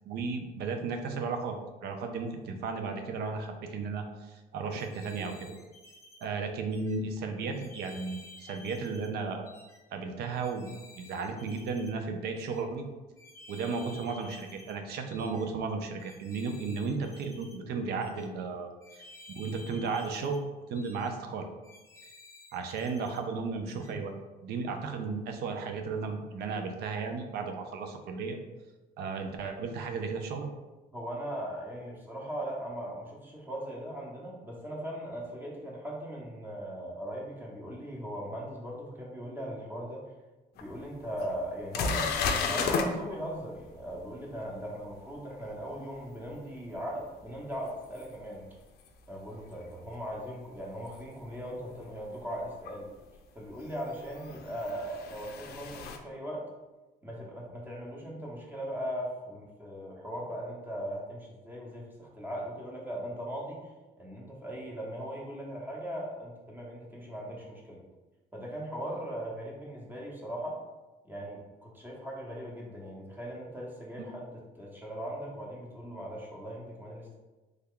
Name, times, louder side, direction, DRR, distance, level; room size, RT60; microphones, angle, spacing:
voice 1, 0.1-1.5 1.8-5.5 6.2-9.5 9.9-12.9 13.5-18.7 19.0-20.4 20.7-21.5 22.5-24.1 24.4-28.4 29.0-30.5, right 4 dB, 70° right, 5 dB, 0.5 m, -34 dB
Electric-Birds-Tanya v, 4.7-6.3 6.7-7.0 7.5-9.1 9.5-9.8 10.3-11.9 12.3-12.6 13.2-14.8 15.1-15.4 16.0-17.6 18.0-18.3 18.8-20.4 20.7-21.1 21.6-23.2 23.6-23.9, left 2 dB, 15° left, 0.7 m, -53 dB
voice 2, 30.9-40.1 40.6-48.5 49.1-52.9 53.3-56.4 57.0-63.7 64.0-67.8 68.3-70.6 71.0-77.2, equal, 10° right, -3 dB, 0.9 m, -39 dB
sound 1, 40.6-40.7 41.2-41.3 41.7-42.9 48.0-48.1 50.9-51.0 52.7-52.8 54.1-56.0, left 5 dB, 70° left, 0.4 m, -31 dB
3.2 x 2.2 x 3.6 m, 1.1 s
cardioid pair, 110°, 17 cm